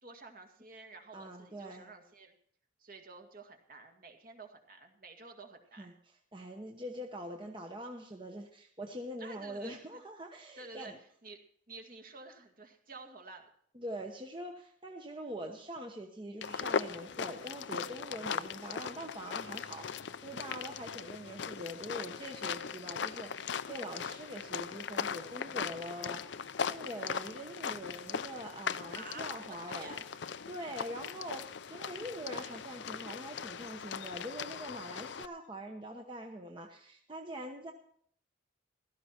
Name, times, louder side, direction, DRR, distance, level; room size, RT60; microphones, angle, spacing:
voice 1, 0.0-2.3 2.8-6.0 9.2-10.0 10.6-11.4 11.7-13.5 28.9-30.0 30.7-30.8, right 3 dB, 50° right, 4 dB, 2.0 m, -51 dB
voice 2, 1.1-1.9 5.8-11.0 13.7-37.7, right 1 dB, 25° right, 2 dB, 1.0 m, -44 dB
sound 1, 16.4-35.3, left 6 dB, 70° left, 0.5 m, -39 dB
16.0 x 13.0 x 4.4 m, 0.62 s
head